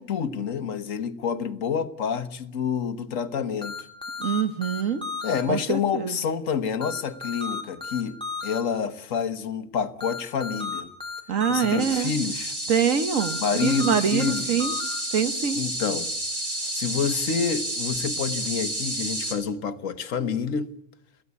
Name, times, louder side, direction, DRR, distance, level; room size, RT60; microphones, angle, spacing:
voice 1, 0.0-3.8 5.2-10.9 11.5-12.5 13.4-14.6 15.5-16.1 16.7-20.7, left 6 dB, 80° left, 1.5 m, -28 dB
sound 1, 3.6-5.4 6.8-8.6 10.0-11.8 13.2-15.0, left 4 dB, 5° left, 3.3 m, -33 dB
voice 2, 4.2-5.0 5.5-6.1 11.3-12.1 12.7-14.7 15.1-15.6 16.6-16.7, right 7 dB, 85° right, 1.6 m, -25 dB
sound 2, 11.8-19.3, right 1 dB, 65° right, 4.5 m, -30 dB
22.0 x 15.5 x 8.3 m
omnidirectional pair, 1.3 m